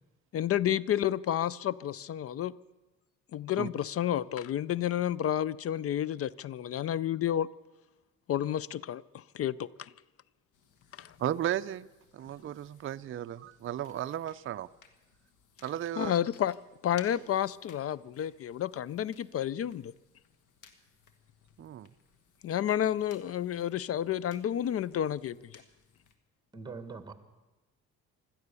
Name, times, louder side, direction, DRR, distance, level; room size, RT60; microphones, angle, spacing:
voice 1, 0.3-2.5 3.3-7.5 8.3-9.9 11.0-11.1 16.0-16.6 16.8-19.9 22.4-25.6, left 11 dB, 50° left, 0.4 m, -30 dB
sound 1, 10.5-26.2, left 6 dB, 80° left, 1.6 m, -61 dB
voice 2, 11.2-11.9 12.1-14.7 15.6-16.1 21.6-21.9, right 11 dB, 45° right, 0.4 m, -34 dB
voice 3, 26.5-27.1, right 4 dB, 15° right, 1.6 m, -42 dB
16.5 x 12.5 x 6.9 m
cardioid pair, 90°, 30 cm